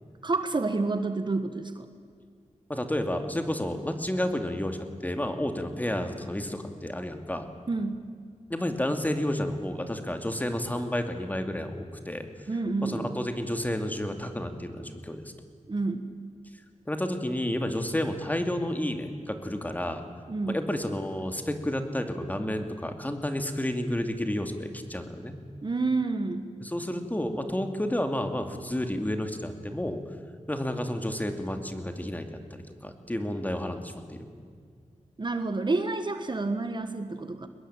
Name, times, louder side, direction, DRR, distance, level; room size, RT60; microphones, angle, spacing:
voice 1, 0.2-1.9 7.7-8.0 12.5-13.1 15.7-16.0 20.3-20.6 25.6-26.5 35.2-37.5, right 3 dB, 40° right, 9 dB, 1.5 m, -29 dB
voice 2, 2.7-7.5 8.5-12.5 12.8-15.3 16.9-20.1 20.5-25.4 26.6-30.0 30.5-34.3, left 1 dB, 15° left, 6 dB, 2.6 m, -31 dB
23.5 x 21.0 x 8.9 m, 2.1 s
wide cardioid pair, 85°, 12 cm